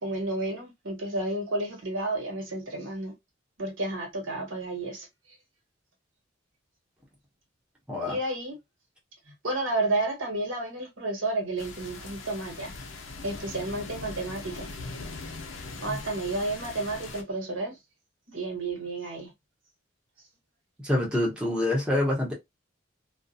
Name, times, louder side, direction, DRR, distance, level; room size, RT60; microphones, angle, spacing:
voice 1, 0.0-3.1 3.6-5.1 8.0-8.6 9.4-12.7 13.2-14.7 15.8-17.8 18.3-19.3, right 2 dB, 85° right, 1.2 m, -31 dB
voice 2, 7.9-8.2 15.9-16.0 20.8-22.3, left 1 dB, 5° right, 0.9 m, -26 dB
sound 1, 11.6-17.2, left 3 dB, 85° left, 0.7 m, -41 dB
2.5 x 2.2 x 2.6 m
head